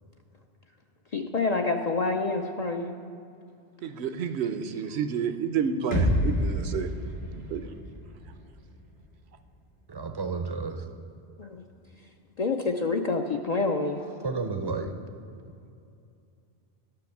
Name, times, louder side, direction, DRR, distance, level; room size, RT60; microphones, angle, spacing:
voice 1, 1.1-2.9 11.4-11.6 12.4-14.0, left 3 dB, 50° left, 3 dB, 0.5 m, -27 dB
voice 2, 3.8-6.9 7.5-7.7, right 7 dB, 75° right, 10 dB, 0.9 m, -30 dB
sound 1, 5.9-9.8, equal, 85° left, 2.4 m, -30 dB
voice 3, 9.9-10.9 14.2-14.9, right 4 dB, 30° right, 7 dB, 0.5 m, -31 dB
10.5 x 6.1 x 7.0 m, 2.5 s
omnidirectional pair, 1.2 m